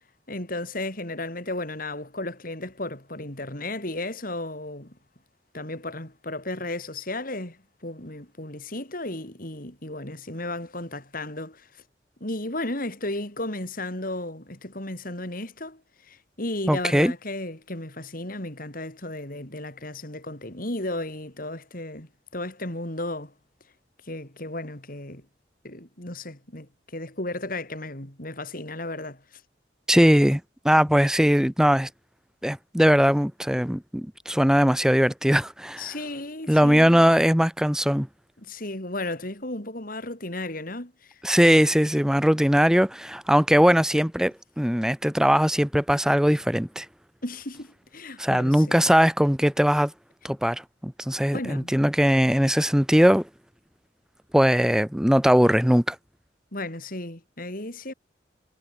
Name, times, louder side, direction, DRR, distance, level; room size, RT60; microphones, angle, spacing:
voice 1, 0.3-5.0 5.5-11.8 12.2-23.3 24.0-25.3 25.6-29.4 30.9-31.0 35.8-37.0 38.4-41.2 41.6-41.7 47.2-48.7 51.3-51.7 56.5-57.9, left 2 dB, 50° left, 4.8 m, -34 dB
voice 2, 16.7-17.1 29.9-31.9 32.4-35.9 36.5-38.1 41.2-46.9 48.2-49.9 50.2-53.2 54.3-56.0, equal, 5° right, 1.0 m, -20 dB
head